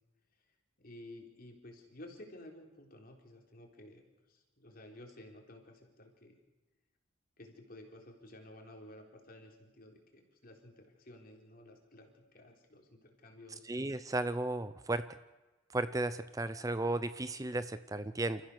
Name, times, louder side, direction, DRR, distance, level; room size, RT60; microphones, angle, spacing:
voice 1, 0.8-6.4 7.4-13.7, left 1 dB, 45° left, 3 dB, 3.7 m, -53 dB
voice 2, 13.7-15.1 15.7-18.4, right 2 dB, 15° right, 13 dB, 0.6 m, -34 dB
28.5 x 15.0 x 6.7 m, 1.1 s
head